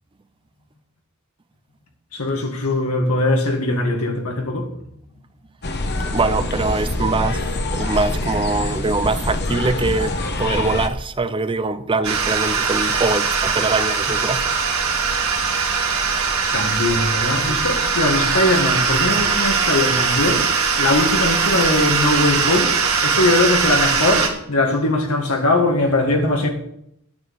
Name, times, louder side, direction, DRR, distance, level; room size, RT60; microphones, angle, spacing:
voice 1, 2.1-4.7 16.5-20.5 20.8-26.5, left 2 dB, 80° left, 2.0 m, -20 dB
sound 1, 5.6-10.9, left 2 dB, 50° left, 1.1 m, -25 dB
voice 2, 6.0-7.4 7.7-14.5, right 3 dB, 25° right, 0.5 m, -23 dB
sound 2, 12.0-24.3, right 5 dB, 70° right, 2.0 m, -20 dB
9.5 x 6.3 x 6.8 m
head